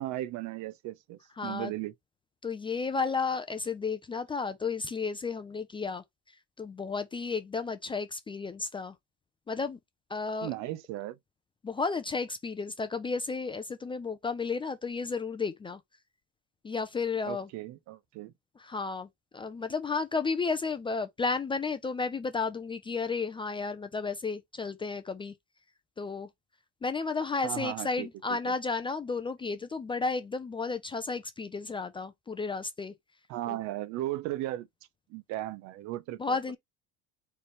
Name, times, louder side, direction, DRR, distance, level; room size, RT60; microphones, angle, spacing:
voice 1, 0.0-1.9 10.4-11.2 17.2-18.3 27.4-28.1 28.5-28.6 33.3-34.7 35.1-36.4, right 15 dB, 50° right, 0.7 m, -36 dB
voice 2, 1.4-1.7 2.4-6.0 6.6-9.0 9.5-9.8 10.1-10.5 11.6-15.8 16.6-17.5 18.6-19.1 19.3-25.3 26.0-26.3 26.8-32.9 33.5-33.6 36.2-36.6, left 4 dB, 15° left, 0.5 m, -32 dB
4.2 x 3.4 x 3.1 m
supercardioid pair, 130°, 36 cm